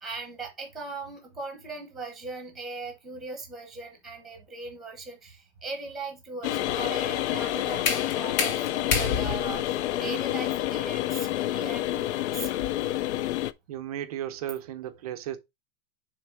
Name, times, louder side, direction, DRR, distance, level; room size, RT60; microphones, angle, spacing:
voice 1, 0.0-12.5, right 3 dB, ahead, 0.9 m, -39 dB
sound 1, 6.4-13.5, left 14 dB, 60° left, 0.5 m, -28 dB
sound 2, 7.2-12.9, left 5 dB, 80° left, 3.0 m, -32 dB
voice 2, 13.7-15.4, right 11 dB, 30° right, 0.5 m, -34 dB
6.8 x 3.3 x 4.6 m
supercardioid pair, 180°, 39 cm